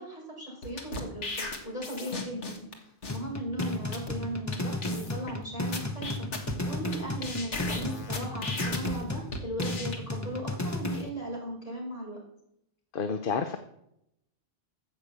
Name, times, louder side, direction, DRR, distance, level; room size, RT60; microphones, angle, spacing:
voice 1, 0.0-6.3 6.6-12.2, right 1 dB, 30° left, -2 dB, 4.8 m, -37 dB
sound 1, 0.6-2.7 3.0-3.2 3.6-3.7 3.9-4.1 4.5-4.6 4.8-5.3 5.7-7.0 7.2-8.9 9.3-10.0, left 3 dB, 90° left, 2.0 m, -36 dB
sound 2, 3.1-11.1, left 1 dB, 15° left, 0.8 m, -34 dB
voice 2, 12.9-13.6, left 5 dB, 55° left, 8 dB, 0.9 m, -30 dB
13.5 x 6.8 x 8.0 m, 0.80 s
omnidirectional pair, 1.2 m